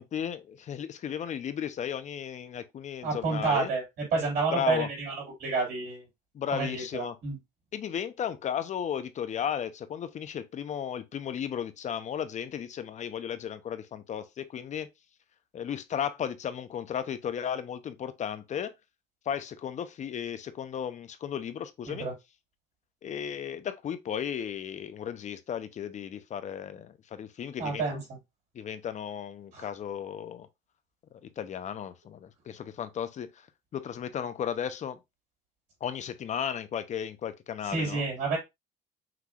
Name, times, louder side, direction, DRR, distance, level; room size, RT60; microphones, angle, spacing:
voice 1, 0.0-3.7 4.5-4.9 6.3-7.2 7.7-14.9 15.5-18.7 19.3-22.1 23.0-28.0 28.5-30.5 31.2-33.5 33.7-35.0 35.8-38.1, left 8 dB, 45° left, 0.7 m, -35 dB
voice 2, 3.0-5.1 5.4-6.0 6.5-7.4 21.9-22.1 27.6-28.0 29.5-29.7 37.6-38.4, right 4 dB, 70° right, 3.3 m, -29 dB
5.9 x 3.2 x 2.4 m
cardioid pair, 110°, 17 cm